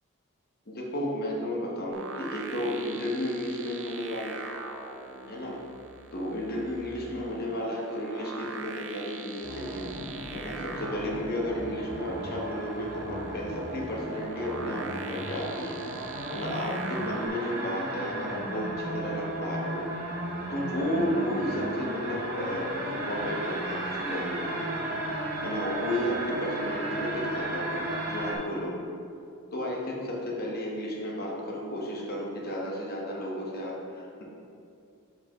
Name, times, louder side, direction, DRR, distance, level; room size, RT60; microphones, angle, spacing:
voice 1, 0.7-4.4 5.3-5.6 6.1-9.9 10.3-19.9 20.5-24.9 25.4-28.8 29.5-34.2, equal, 45° left, -3 dB, 0.9 m, -33 dB
sound 1, 1.9-17.3, right 4 dB, 60° right, 0.4 m, -43 dB
sound 2, 9.4-28.4, right 1 dB, 45° right, 0.8 m, -35 dB
6.9 x 4.8 x 2.9 m, 2.5 s
head